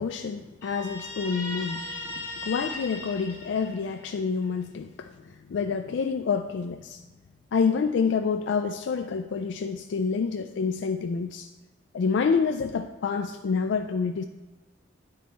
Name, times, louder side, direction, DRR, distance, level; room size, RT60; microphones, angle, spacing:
voice 1, 0.0-1.9 2.4-5.1 5.5-7.0 7.5-11.5 11.9-14.2, left 5 dB, 65° left, 6 dB, 0.3 m, -27 dB
Guitar, 0.6-4.2, left 2 dB, 15° left, 1.1 m, -37 dB
9.3 x 4.1 x 4.3 m, 1.2 s
head